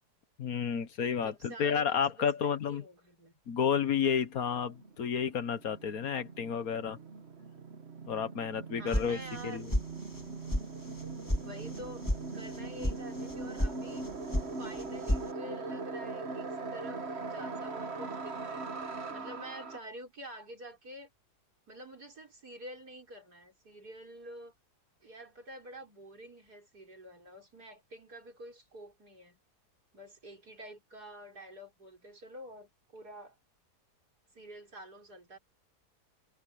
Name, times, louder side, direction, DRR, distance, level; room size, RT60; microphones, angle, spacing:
voice 1, 0.4-2.8 3.5-7.0 8.1-9.2 9.4-9.7, left 7 dB, 65° left, 1.6 m, -31 dB
voice 2, 1.2-3.3 8.7-9.7 11.4-14.0 14.6-21.1 21.7-24.5 25.0-29.4 29.9-33.4 34.3-35.4, right 1 dB, 75° right, 6.4 m, -48 dB
sound 1, 4.3-4.4 4.5-19.8, right 3 dB, 45° right, 1.7 m, -41 dB
sound 2, 8.9-9.4 9.7-10.2 10.5-10.6 11.0-11.4 11.7-12.2 12.5-12.9 13.3-13.7 14.0-14.5 14.7-15.2, equal, 10° left, 2.6 m, -30 dB
omnidirectional pair, 1.7 m